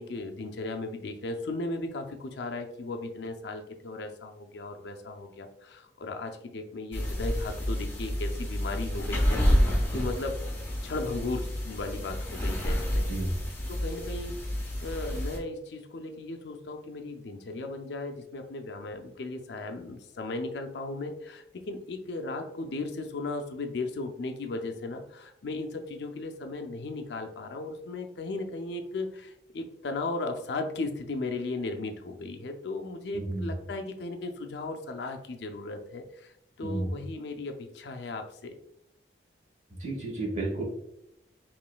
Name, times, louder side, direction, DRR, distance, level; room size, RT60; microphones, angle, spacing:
voice 1, 0.0-10.4 10.8-13.1 13.7-38.5, left 2 dB, 70° left, 5 dB, 0.5 m, -36 dB
sound 1, 6.9-15.4, equal, 15° left, 0.7 m, -29 dB
voice 2, 33.1-33.5 36.6-36.9 39.8-40.6, right 2 dB, 35° right, -2 dB, 1.2 m, -32 dB
4.9 x 3.1 x 2.2 m, 0.78 s
head